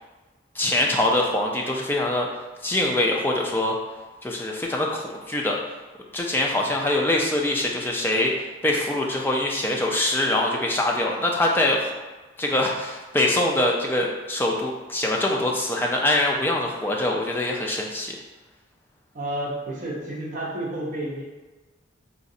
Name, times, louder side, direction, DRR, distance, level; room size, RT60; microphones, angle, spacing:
voice 1, 0.6-2.3 2.6-3.8 4.2-5.6 6.1-8.3 8.6-11.9 12.4-18.2, left 1 dB, 10° left, -1 dB, 0.3 m, -23 dB
voice 2, 19.1-21.2, right 1 dB, 40° right, -4 dB, 0.7 m, -30 dB
3.9 x 2.4 x 2.6 m, 1.2 s
head